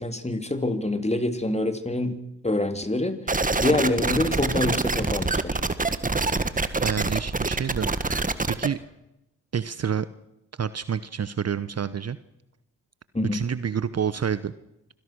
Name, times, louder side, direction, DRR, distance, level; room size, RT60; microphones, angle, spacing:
voice 1, 0.0-2.2 2.4-3.2 3.6-5.6 13.1-13.4, left 2 dB, 15° left, 9 dB, 3.2 m, -26 dB
sound 1, 3.3-8.7, right 3 dB, 20° right, 1.7 m, -25 dB
voice 2, 6.8-8.8 9.5-10.1 10.6-12.2 13.3-14.5, right 7 dB, 40° right, 15 dB, 1.0 m, -28 dB
25.5 x 17.0 x 6.3 m, 0.89 s
hypercardioid pair, 45°, 39 cm